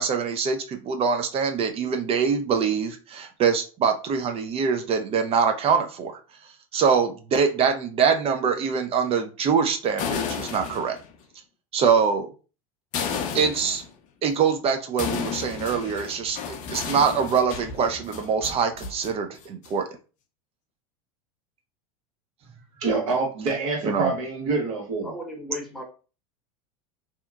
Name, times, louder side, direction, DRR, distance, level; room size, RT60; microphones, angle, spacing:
voice 1, 0.0-6.1 6.7-11.0 11.7-12.3 13.3-13.8 14.2-19.8 23.8-24.1, right 6 dB, 30° right, 6 dB, 0.4 m, -24 dB
sound 1, 9.9-11.1 12.9-13.9 15.0-19.1 19.4-19.9, left 6 dB, 45° left, 0.5 m, -32 dB
voice 2, 22.8-25.1, right 3 dB, 70° right, -1 dB, 1.3 m, -26 dB
voice 3, 25.0-25.8, left 1 dB, ahead, -1 dB, 0.9 m, -35 dB
2.8 x 2.2 x 2.3 m, 0.35 s
hypercardioid pair, 100°, 19 cm